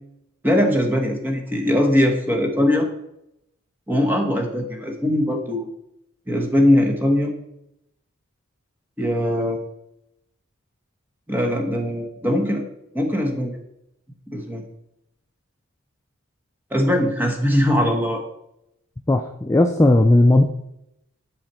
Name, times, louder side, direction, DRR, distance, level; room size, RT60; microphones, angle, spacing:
voice 1, 0.4-2.9 3.9-5.7 6.3-7.3 9.0-9.6 11.3-12.6 12.9-13.6 14.3-14.7 16.7-18.2, left 1 dB, 10° right, 2 dB, 1.2 m, -20 dB
voice 2, 19.1-20.4, left 1 dB, 15° left, 4 dB, 0.3 m, -16 dB
11.0 x 5.0 x 4.3 m, 0.82 s
head